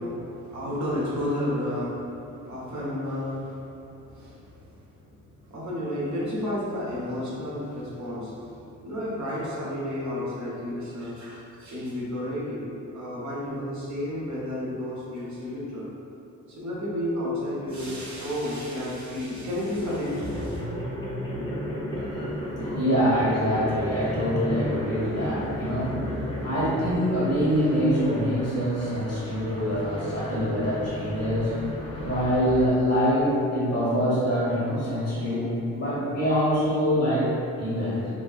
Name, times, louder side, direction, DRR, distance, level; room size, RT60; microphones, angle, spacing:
voice 1, 0.0-15.9 16.5-20.6, left 1 dB, 45° right, -7 dB, 0.8 m, -32 dB
sound 1, 17.7-18.9 19.2-32.7, equal, 15° left, 0.6 m, -34 dB
voice 2, 21.9-38.1, equal, 40° left, -8 dB, 1.2 m, -25 dB
2.7 x 2.3 x 2.4 m, 2.7 s
hypercardioid pair, 40°, 39 cm